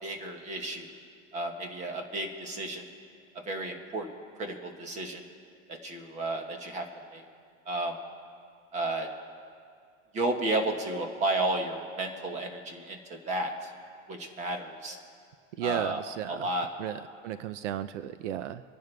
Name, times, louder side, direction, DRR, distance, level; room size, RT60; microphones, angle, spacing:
voice 1, 0.0-0.9 1.3-2.8 3.5-4.1 4.4-5.2 5.8-6.8 7.1-7.2 7.7-7.9 8.7-9.1 10.1-13.7 14.1-15.0 15.6-16.0 16.3-16.7, right 2 dB, 20° right, 4 dB, 1.3 m, -32 dB
voice 2, 15.6-16.5 16.8-18.6, right 11 dB, 70° right, 13 dB, 0.6 m, -34 dB
26.5 x 10.5 x 3.3 m, 2.2 s
supercardioid pair, 170°, 38 cm